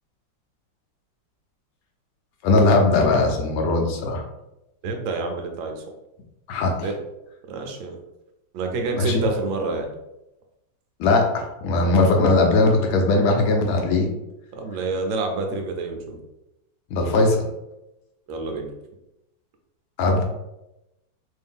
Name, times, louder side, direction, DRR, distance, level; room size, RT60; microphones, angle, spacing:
voice 1, 2.4-4.2 6.5-6.9 8.9-9.2 11.0-14.1 16.9-17.5 20.0-20.2, left 2 dB, 85° left, 3 dB, 1.5 m, -19 dB
voice 2, 4.8-5.8 6.8-6.9 7.5-8.0 8.5-9.9 14.5-16.2 18.3-18.7, right 3 dB, 85° right, 3 dB, 1.4 m, -28 dB
3.6 x 2.7 x 3.5 m, 0.92 s
omnidirectional pair, 2.1 m